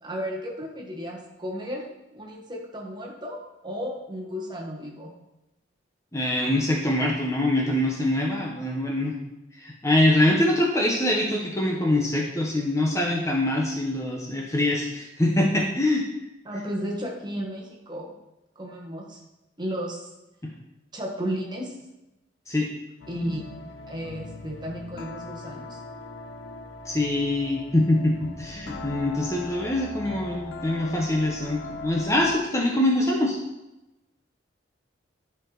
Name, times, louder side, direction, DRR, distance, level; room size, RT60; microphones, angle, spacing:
voice 1, 0.0-1.8 2.1-5.1 16.4-18.1 18.5-19.2 19.6-20.1 20.9-21.7 23.1-23.4 23.9-25.8, equal, 25° right, -1 dB, 1.5 m, -33 dB
voice 2, 6.1-9.2 9.5-16.1 20.4-20.5 22.5-22.7 26.8-33.4, left 1 dB, 15° left, -1 dB, 0.9 m, -24 dB
sound 1, 23.0-32.5, left 3 dB, 90° left, 0.6 m, -40 dB
10.5 x 4.7 x 3.9 m, 0.97 s
head